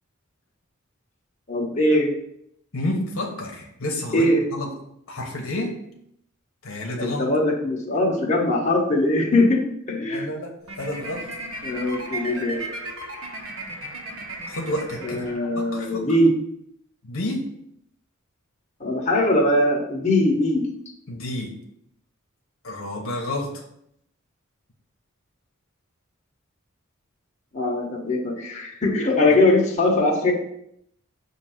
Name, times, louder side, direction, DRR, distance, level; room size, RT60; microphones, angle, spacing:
voice 1, 1.5-2.1 4.1-4.4 7.0-9.6 9.9-10.3 11.6-12.6 15.0-16.3 18.8-20.6 27.5-30.3, left 1 dB, 35° left, -3 dB, 1.2 m, -21 dB
voice 2, 2.7-4.7 5.1-5.8 6.6-7.3 10.1-11.3 14.5-15.3 15.6-16.0 17.0-17.5 21.1-21.6 22.6-23.6, left 1 dB, 75° left, 0 dB, 1.1 m, -30 dB
sound 1, 10.6-15.9, right 1 dB, 75° right, 1.2 m, -35 dB
6.5 x 2.8 x 5.7 m, 0.74 s
head